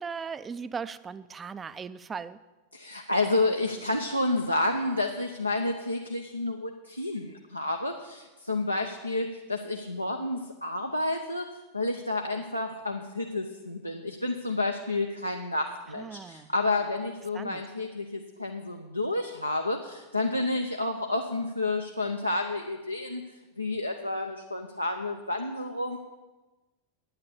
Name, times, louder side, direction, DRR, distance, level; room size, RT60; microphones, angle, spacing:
voice 1, 0.0-2.4 16.0-16.5 17.3-17.6, right 6 dB, 20° right, 15 dB, 0.4 m, -38 dB
voice 2, 2.7-11.5 11.7-23.2 23.6-26.0, left 2 dB, 90° left, 2 dB, 0.7 m, -30 dB
9.4 x 9.0 x 7.1 m, 1.1 s
figure-of-eight pair, 90°, 0 cm